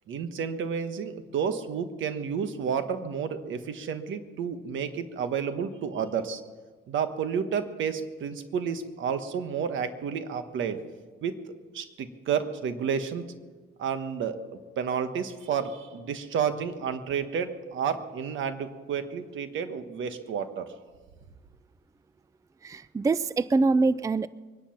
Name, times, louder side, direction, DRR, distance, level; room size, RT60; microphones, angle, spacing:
voice 1, 0.1-6.4 6.9-10.8 11.2-11.4 11.7-13.2 13.8-14.4 14.8-20.7, right 7 dB, 75° right, 9 dB, 1.3 m, -31 dB
voice 2, 22.6-24.3, right 3 dB, 15° right, 17 dB, 0.4 m, -24 dB
23.0 x 10.5 x 5.9 m, 1.4 s
cardioid pair, 90°, 20 cm